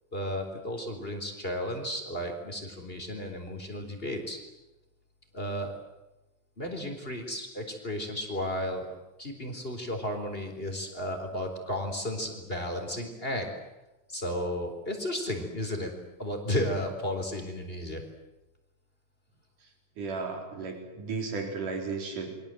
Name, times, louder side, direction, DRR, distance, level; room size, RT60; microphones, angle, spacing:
voice 1, 0.1-4.4 5.3-5.7 6.6-8.9 9.2-13.5 14.1-15.9 16.2-18.0, left 1 dB, 15° left, 4 dB, 3.9 m, -33 dB
voice 2, 20.0-22.4, right 4 dB, 75° right, 2 dB, 5.8 m, -34 dB
28.5 x 23.5 x 7.8 m, 1.0 s
omnidirectional pair, 3.6 m